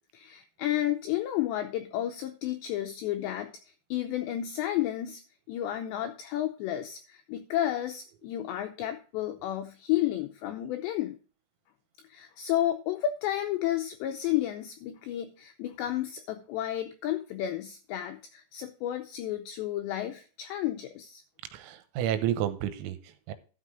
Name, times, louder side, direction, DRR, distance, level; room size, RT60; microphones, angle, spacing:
voice 1, 0.1-5.2 5.5-11.2 12.0-21.2, left 12 dB, 85° left, 6 dB, 2.5 m, -32 dB
voice 2, 21.5-23.3, right 10 dB, 85° right, 11 dB, 3.7 m, -31 dB
12.5 x 5.9 x 4.9 m, 0.37 s
omnidirectional pair, 5.9 m